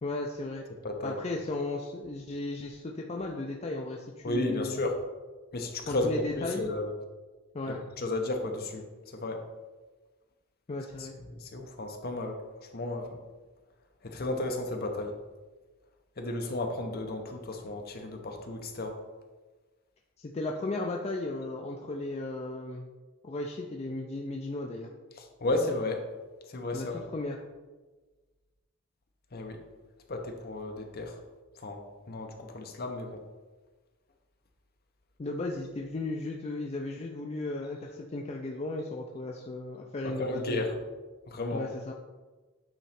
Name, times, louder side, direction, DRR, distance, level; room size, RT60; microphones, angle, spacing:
voice 1, 0.0-0.6 1.0-4.8 5.8-6.7 7.5-7.8 10.7-11.1 20.2-22.9 23.2-24.9 26.7-27.4 35.2-40.6 41.5-41.9, left 2 dB, 30° left, 1 dB, 0.4 m, -35 dB
voice 2, 4.2-5.0 5.5-6.9 7.7-8.8 9.2-9.4 11.3-12.4 12.7-13.2 14.0-15.2 16.2-19.0 25.4-26.0 26.5-27.0 29.3-29.6 30.1-31.1 31.6-31.8 32.1-33.2 40.2-40.8 41.3-41.7, left 2 dB, 50° left, 4 dB, 0.8 m, -33 dB
8.9 x 3.1 x 4.2 m, 1.3 s
head